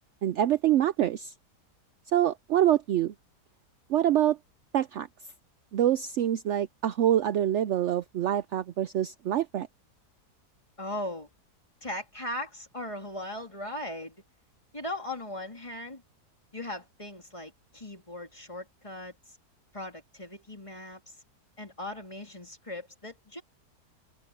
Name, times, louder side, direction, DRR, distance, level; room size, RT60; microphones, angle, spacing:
voice 1, 0.2-1.3 2.1-3.1 3.9-4.4 4.7-5.1 5.7-9.7, right 11 dB, 70° right, 0.7 m, -25 dB
voice 2, 10.8-11.3 11.8-14.2 14.7-16.0 16.5-19.1 19.7-21.0 21.6-23.4, left 1 dB, 20° left, 3.6 m, -38 dB
open air
omnidirectional pair, 1.8 m